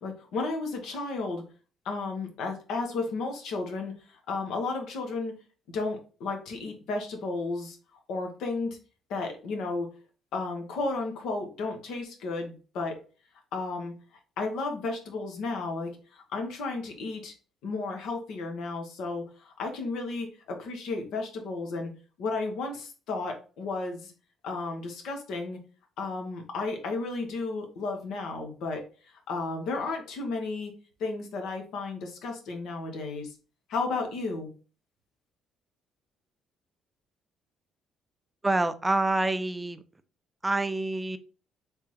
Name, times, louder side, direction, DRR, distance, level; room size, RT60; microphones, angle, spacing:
voice 1, 0.0-1.5 1.8-5.3 5.7-7.8 8.1-8.8 9.1-9.9 10.3-13.0 13.5-13.9 14.4-17.3 17.6-21.9 22.2-24.1 24.4-25.6 26.0-28.8 29.3-30.7 31.0-33.3 33.7-34.5, left 3 dB, 75° left, 3 dB, 1.0 m, -33 dB
voice 2, 38.4-39.8 40.4-41.2, right 2 dB, 15° right, 11 dB, 0.4 m, -27 dB
3.5 x 3.2 x 3.0 m, 0.36 s
supercardioid pair, 65°, 0 cm